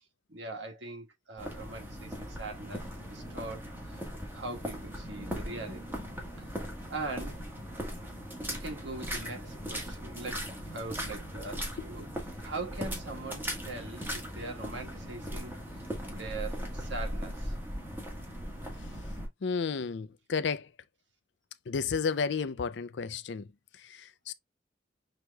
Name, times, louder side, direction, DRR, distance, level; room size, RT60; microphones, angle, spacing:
voice 1, 0.3-4.0 4.3-6.0 6.4-7.4 8.5-12.1 12.4-17.6, right 3 dB, 75° right, 1.5 m, -42 dB
sound 1, 1.4-19.3, equal, 10° right, 1.4 m, -39 dB
voice 2, 19.4-20.7 21.7-23.5 23.8-24.3, left 5 dB, 70° left, 0.4 m, -32 dB
6.2 x 3.0 x 2.2 m
head